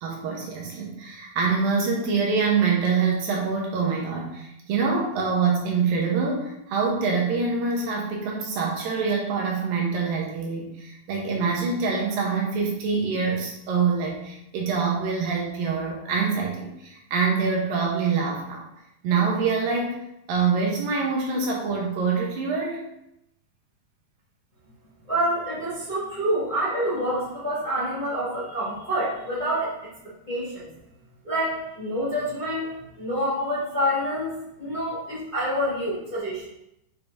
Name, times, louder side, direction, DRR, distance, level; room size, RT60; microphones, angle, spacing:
voice 1, 0.0-18.7 19.0-20.0 20.3-22.9, right 5 dB, 70° right, -1 dB, 2.6 m, -25 dB
voice 2, 25.1-29.7 30.3-30.7 31.2-32.7 32.9-34.3 34.6-36.4, equal, 15° left, -10 dB, 1.7 m, -27 dB
8.8 x 5.4 x 2.7 m, 0.82 s
omnidirectional pair, 4.4 m